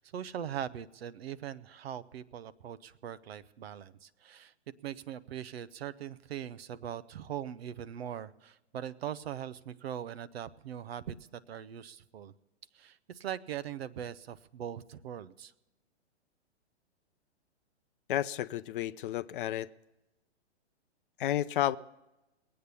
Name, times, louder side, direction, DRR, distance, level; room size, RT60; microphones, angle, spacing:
voice 1, 0.0-4.5 4.8-12.3 12.7-15.5, right 10 dB, 60° right, 0.8 m, -41 dB
voice 2, 18.1-19.7 21.2-21.8, left 13 dB, 50° left, 0.6 m, -31 dB
20.5 x 8.7 x 6.9 m
hypercardioid pair, 120°, 34 cm